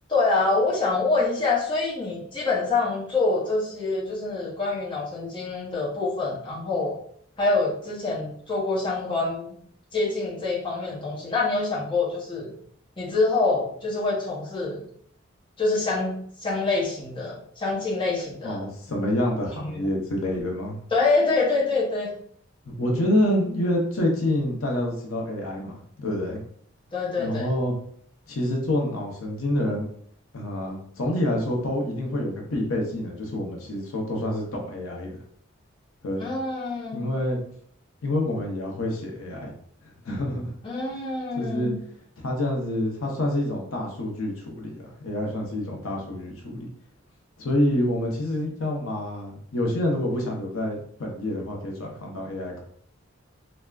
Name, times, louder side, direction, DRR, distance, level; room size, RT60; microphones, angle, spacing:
voice 1, 0.1-7.0 7.4-9.6 9.9-12.5 13.0-14.8 15.6-18.7 19.6-19.8 20.9-22.1 26.9-27.5 36.2-37.0 40.6-41.8, left 3 dB, 25° left, -6 dB, 0.6 m, -26 dB
voice 2, 18.4-20.8 22.7-26.4 27.2-27.7 28.3-29.9 30.3-35.1 36.0-36.3 36.9-37.4 38.0-39.5 39.8-40.5 41.3-41.7 42.2-46.7 47.4-52.6, left 1 dB, 80° left, 0 dB, 0.7 m, -27 dB
3.3 x 2.1 x 2.3 m, 0.62 s
head